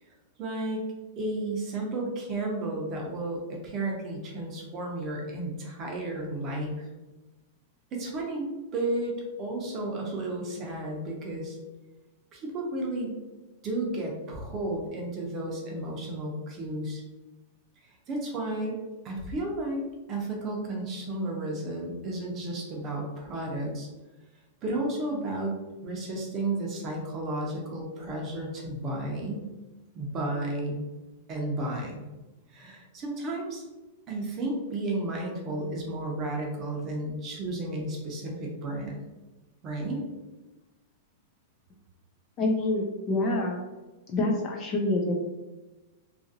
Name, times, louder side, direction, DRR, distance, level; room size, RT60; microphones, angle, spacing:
voice 1, 0.4-0.8 1.2-6.8 7.9-8.4 8.7-11.6 12.3-13.2 13.6-17.0 18.1-18.7 19.0-19.8 20.1-23.9 24.6-25.6 25.8-29.5 29.9-30.8 31.3-32.1 32.5-33.6 34.1-39.0 39.6-40.0, right 2 dB, 25° right, -1 dB, 0.6 m, -32 dB
voice 2, 42.4-43.6 44.1-45.1, left 2 dB, 25° left, 0 dB, 0.3 m, -26 dB
2.7 x 2.5 x 2.6 m, 1.1 s
supercardioid pair, 165°, 0 cm